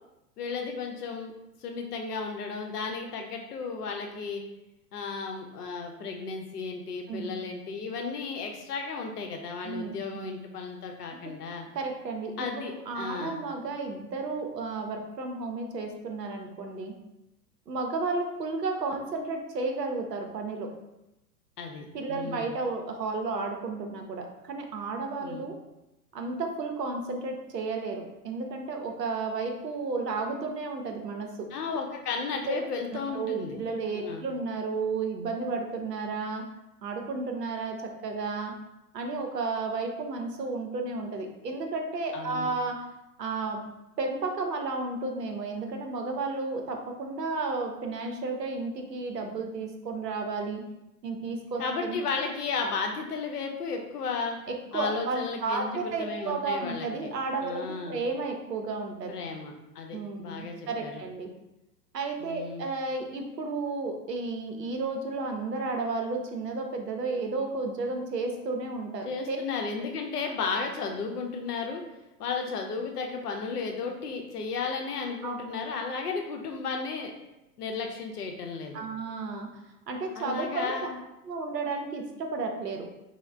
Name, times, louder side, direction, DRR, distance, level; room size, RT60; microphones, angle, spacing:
voice 1, 0.4-1.3 1.6-4.4 4.9-11.6 12.4-13.4 21.6-22.5 25.2-25.5 31.5-33.6 33.9-34.2 42.1-42.5 51.6-54.4 54.7-57.1 57.4-58.0 59.1-61.0 62.2-62.6 69.0-71.8 72.2-77.1 77.6-78.8 80.2-80.9, left 4 dB, 70° left, 3 dB, 0.6 m, -34 dB
voice 2, 9.6-9.9 11.7-16.9 17.7-20.7 21.9-25.6 26.1-31.5 32.5-32.6 32.9-36.4 36.8-37.8 38.0-38.5 38.9-42.8 43.2-43.6 44.0-50.6 51.0-52.0 54.5-59.1 59.9-61.3 61.9-69.4 75.2-75.4 78.7-79.5 79.9-81.0 81.3-82.9, right 3 dB, 80° right, 3 dB, 0.6 m, -32 dB
3.9 x 2.1 x 2.2 m, 0.93 s
figure-of-eight pair, 95°, 48 cm